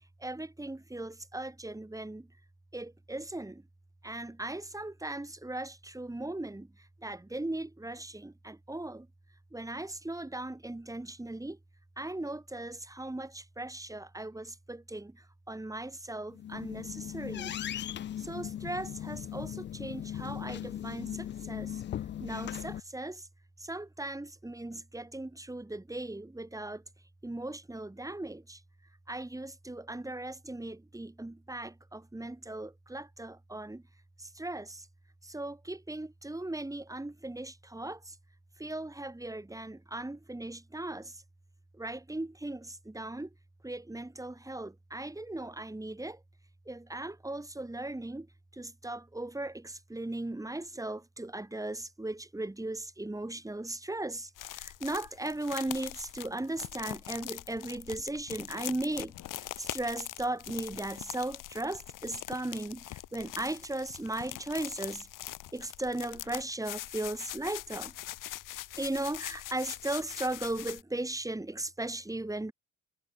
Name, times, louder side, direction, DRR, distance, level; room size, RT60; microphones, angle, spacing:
voice 1, 0.2-2.3 2.7-3.6 4.0-9.1 9.5-11.6 12.0-17.6 18.2-21.8 22.2-23.3 23.6-26.8 27.2-28.6 29.1-33.8 34.2-34.9 35.2-38.2 38.6-41.2 41.7-43.3 43.6-46.2 46.6-48.3 48.5-65.1 65.5-67.9 68.8-72.5, right 2 dB, 10° right, 3.1 m, -38 dB
sound 1, 16.3-22.8, left 11 dB, 35° left, 0.4 m, -38 dB
sound 2, 54.4-70.8, left 15 dB, 75° left, 4.5 m, -42 dB
supercardioid pair, 75°, 32 cm